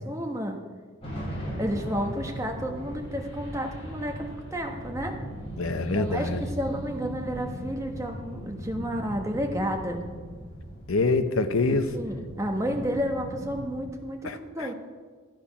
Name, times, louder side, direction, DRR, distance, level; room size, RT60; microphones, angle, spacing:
voice 1, 0.1-0.6 1.6-5.2 5.9-10.0 11.7-14.7, equal, 15° right, 3 dB, 1.0 m, -31 dB
sound 1, 1.0-13.8, equal, 30° left, 4.3 m, -38 dB
voice 2, 5.6-6.4 10.9-11.9 14.2-14.7, left 3 dB, 75° left, 9 dB, 0.8 m, -25 dB
13.0 x 8.6 x 5.7 m, 1.5 s
head